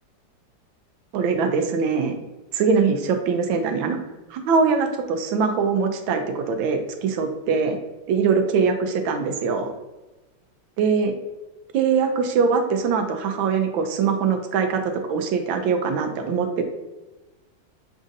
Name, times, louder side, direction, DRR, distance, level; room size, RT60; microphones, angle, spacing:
voice 1, 1.1-2.2 2.5-4.0 4.3-7.8 8.1-9.7 10.8-11.1 11.7-16.6, right 5 dB, 85° right, 5 dB, 1.4 m, -22 dB
7.1 x 2.5 x 2.6 m, 1.1 s
omnidirectional pair, 2.1 m